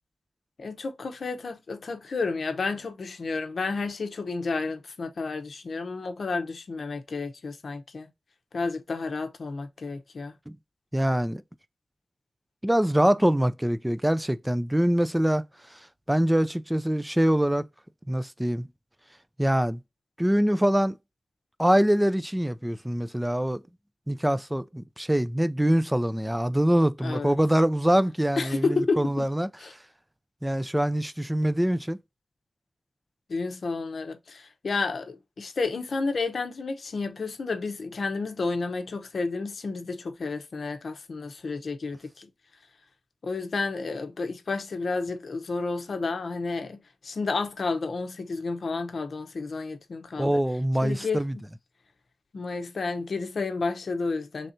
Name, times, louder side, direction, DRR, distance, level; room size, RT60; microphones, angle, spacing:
voice 1, 0.6-8.1 8.5-10.4 27.0-27.4 28.4-29.3 29.6-29.7 33.3-42.7 43.2-50.4 50.8-51.4 52.3-54.5, left 4 dB, 70° left, 0.6 m, -31 dB
voice 2, 10.9-11.4 12.6-15.4 15.7-15.8 16.1-17.7 18.1-18.7 19.4-19.8 20.2-21.0 21.6-23.6 24.1-28.6 29.0-29.5 30.4-32.0 50.2-51.3, equal, 10° right, 0.4 m, -24 dB
3.3 x 2.6 x 4.3 m
wide cardioid pair, 100°, 0 cm